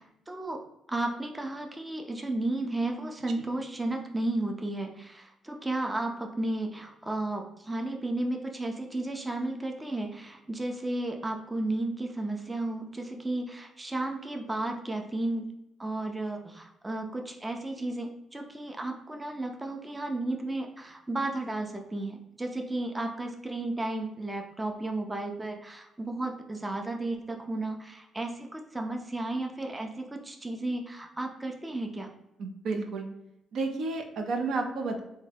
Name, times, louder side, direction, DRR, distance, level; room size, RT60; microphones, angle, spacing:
voice 1, 0.0-15.5 15.8-32.1, right 2 dB, 15° right, 3 dB, 0.5 m, -33 dB
voice 2, 32.4-33.1 33.5-35.0, right 3 dB, 65° right, 4 dB, 0.5 m, -31 dB
3.5 x 2.2 x 3.3 m, 0.90 s
cardioid pair, 90°, 0 cm